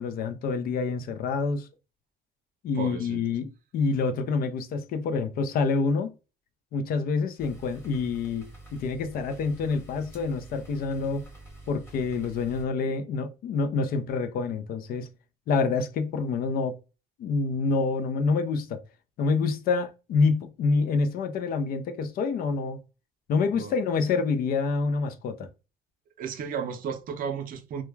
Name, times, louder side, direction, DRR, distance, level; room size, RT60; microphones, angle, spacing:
voice 1, 0.0-1.7 2.6-6.1 6.7-11.3 11.7-15.1 15.5-16.8 17.2-18.8 19.2-22.8 23.3-25.5, left 4 dB, 60° left, 0.5 m, -27 dB
voice 2, 2.8-3.2 23.5-23.7 26.2-27.8, right 6 dB, 55° right, 0.5 m, -33 dB
sound 1, 7.4-12.7, right 2 dB, 15° left, 1.0 m, -47 dB
2.2 x 2.1 x 3.1 m
cardioid pair, 110°, 17 cm